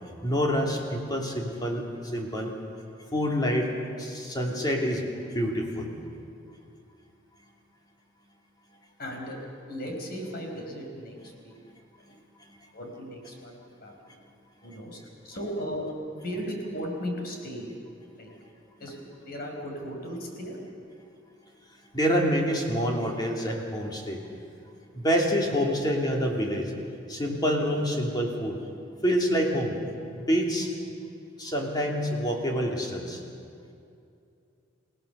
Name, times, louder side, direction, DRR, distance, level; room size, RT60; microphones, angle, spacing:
voice 1, 0.2-2.5 3.1-5.0 5.3-5.9 21.9-24.2 24.9-26.7 27.1-28.6 29.0-29.8 30.1-30.7 31.4-33.2, equal, 20° left, 0 dB, 2.9 m, -27 dB
voice 2, 9.0-9.4 9.7-11.6 12.0-12.1 12.7-14.2 14.6-15.8 16.1-17.7 18.1-18.3 18.8-20.6, equal, 50° left, 1 dB, 4.7 m, -36 dB
28.5 x 17.5 x 6.9 m, 2.5 s
head